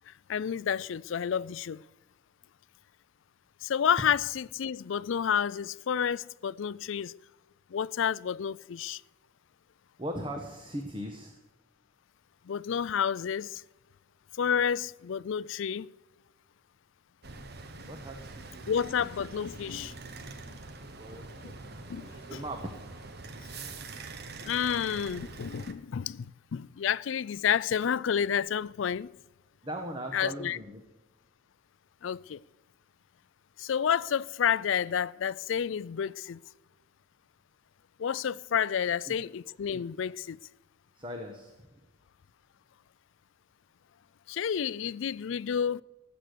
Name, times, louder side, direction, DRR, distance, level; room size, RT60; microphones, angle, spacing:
voice 1, 0.1-1.8 3.6-7.1 7.7-9.0 12.5-13.6 14.4-15.9 18.7-19.9 21.4-21.5 21.9-22.1 24.4-29.1 30.1-30.6 32.0-32.4 33.6-36.4 38.0-40.4 44.3-45.8, left 8 dB, 65° left, 0.4 m, -30 dB
voice 2, 10.0-11.4 17.9-18.9 21.0-22.7 29.6-30.8 39.0-39.3 40.9-41.8, right 1 dB, 25° right, 1.3 m, -40 dB
sound 1, 17.2-25.7, right 3 dB, 55° right, 1.1 m, -44 dB
18.0 x 8.1 x 6.7 m
head